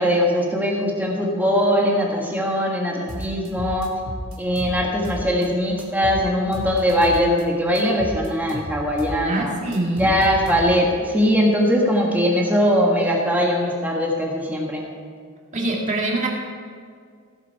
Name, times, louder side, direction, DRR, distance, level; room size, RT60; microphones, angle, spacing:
voice 1, 0.0-3.9 4.4-9.6 10.0-14.9, equal, 10° right, -1 dB, 1.5 m, -21 dB
sound 1, 3.1-5.5 5.8-7.4 7.8-11.0, equal, 75° right, 1.8 m, -33 dB
voice 2, 9.3-10.1 15.5-16.3, right 2 dB, 35° right, -1 dB, 2.1 m, -24 dB
16.5 x 7.4 x 4.7 m, 2.1 s
head